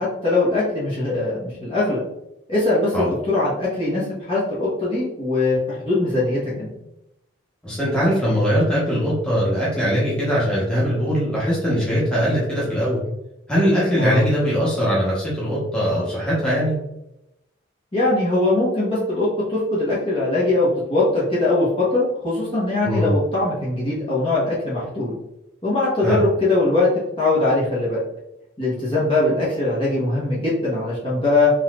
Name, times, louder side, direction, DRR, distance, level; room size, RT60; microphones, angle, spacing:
voice 1, 0.0-2.0 2.5-6.7 14.0-14.2 17.9-25.1 25.6-26.9 27.2-28.0 28.6-31.5, left 2 dB, 25° left, -8 dB, 1.1 m, -21 dB
voice 2, 7.6-13.0 13.5-16.7 22.8-23.1 26.0-26.2, equal, 5° left, -8 dB, 1.1 m, -21 dB
4.0 x 3.1 x 2.5 m, 0.86 s
head